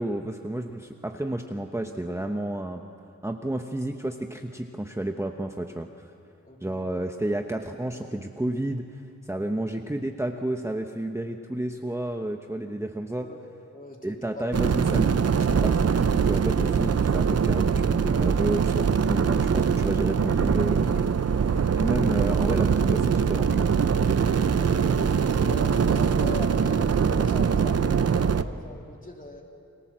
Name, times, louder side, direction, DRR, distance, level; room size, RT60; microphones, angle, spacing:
voice 1, 0.0-2.8 3.2-5.9 6.6-8.9 9.2-13.3 14.0-20.9 21.8-23.7, right 1 dB, 10° right, 4 dB, 1.0 m, -31 dB
voice 2, 6.4-6.8 9.4-9.5 13.2-14.5 15.0-15.1 17.6-17.7 21.4-21.8 24.5-29.4, left 1 dB, 30° left, 1 dB, 3.2 m, -40 dB
sound 1, 14.5-28.4, right 6 dB, 55° right, 0.8 m, -23 dB
30.0 x 22.0 x 7.5 m, 2.5 s
wide cardioid pair, 100°, 29 cm